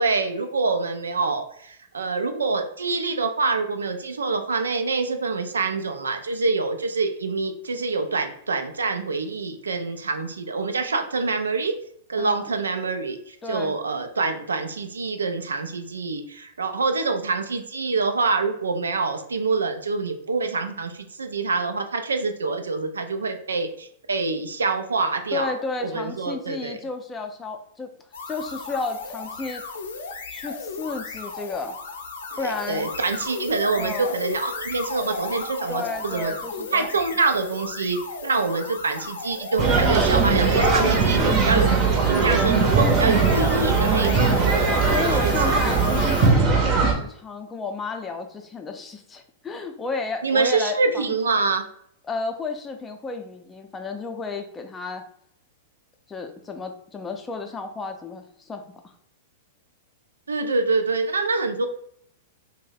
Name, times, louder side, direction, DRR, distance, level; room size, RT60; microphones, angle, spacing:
voice 1, 0.0-11.8 12.1-25.5 25.8-26.8 32.4-36.3 36.7-41.7 42.0-44.3 44.8-45.6 50.2-51.6 60.3-61.7, right 4 dB, 85° right, 7 dB, 0.3 m, -26 dB
voice 2, 12.2-12.5 13.4-13.8 25.3-27.9 28.3-29.6 30.3-31.8 32.4-32.9 33.7-34.1 35.7-37.1 42.9-43.3 44.0-44.3 44.8-51.2 52.1-55.0 56.1-58.6, left 4 dB, 15° left, 5 dB, 0.4 m, -32 dB
sound 1, 28.1-46.4, left 4 dB, 70° left, 0.5 m, -34 dB
sound 2, 39.6-46.9, right 4 dB, 35° right, 0.7 m, -20 dB
2.6 x 2.0 x 3.9 m, 0.68 s
hypercardioid pair, 105°, 0 cm